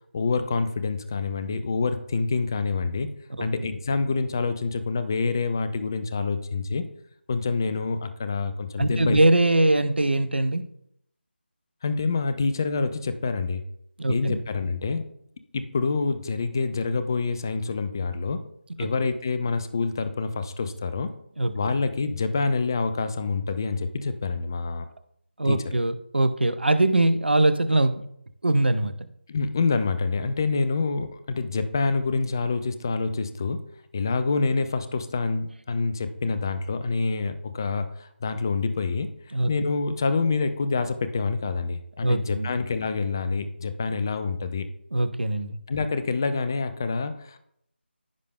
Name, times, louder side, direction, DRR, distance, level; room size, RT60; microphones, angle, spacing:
voice 1, 0.1-3.1 3.4-6.9 7.3-9.2 11.8-13.6 14.1-15.0 15.5-18.4 18.8-21.1 21.5-24.9 25.4-25.7 29.3-33.6 33.9-39.1 39.5-44.7 45.7-47.4, left 4 dB, 20° left, 11 dB, 0.4 m, -27 dB
voice 2, 8.8-10.6 14.0-14.4 18.8-18.9 21.4-21.5 25.4-28.0 28.4-28.9 39.3-39.5 42.0-42.5 44.9-45.6, right 1 dB, 60° right, 11 dB, 0.8 m, -22 dB
15.0 x 5.0 x 2.2 m, 0.73 s
figure-of-eight pair, 160°, 6 cm